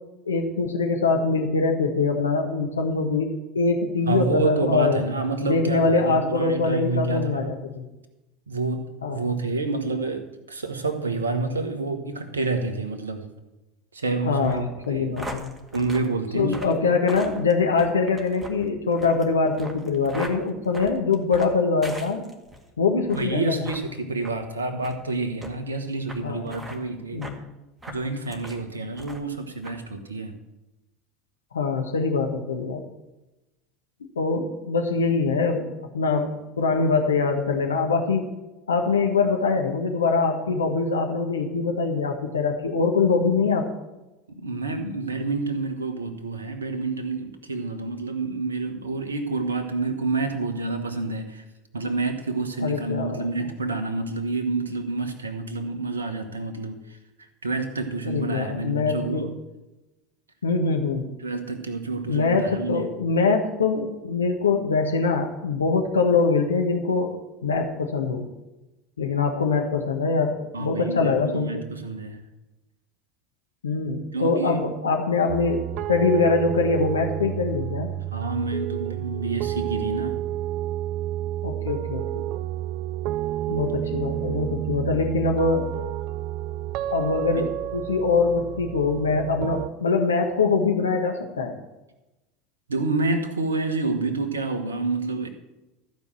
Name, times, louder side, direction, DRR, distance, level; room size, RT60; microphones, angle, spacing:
voice 1, 0.2-5.0 5.4-7.8 9.0-9.2 14.2-15.5 16.3-22.2 22.8-23.5 26.2-26.6 27.1-27.4 31.5-32.8 34.2-35.7 35.9-36.3 36.6-38.3 38.7-43.7 52.6-53.3 58.0-59.3 60.4-61.0 62.1-67.1 67.4-68.2 69.0-71.7 73.6-77.9 81.4-82.3 83.5-85.7 86.9-91.5, left 4 dB, 80° left, 3 dB, 1.3 m, -23 dB
voice 2, 4.1-7.6 8.5-13.2 13.9-15.1 15.7-16.6 23.1-27.2 27.9-30.3 44.4-51.4 51.7-57.0 57.4-59.4 61.2-62.9 70.5-72.2 74.1-74.6 78.1-80.2 92.7-95.3, right 3 dB, 80° right, 7 dB, 1.1 m, -28 dB
sound 1, 14.4-22.6 23.0-23.3 23.6-23.8 24.2-24.4 24.8-25.0 25.4-25.5 26.1-26.2 26.5-26.8 27.2-27.4 27.8-28.6 29.0-29.3 29.6-29.8, right 1 dB, 15° right, 2.0 m, -40 dB
sound 2, 75.3-89.7, right 13 dB, 50° right, 0.4 m, -30 dB
14.0 x 5.2 x 7.6 m, 1.0 s
figure-of-eight pair, 75°, 0 cm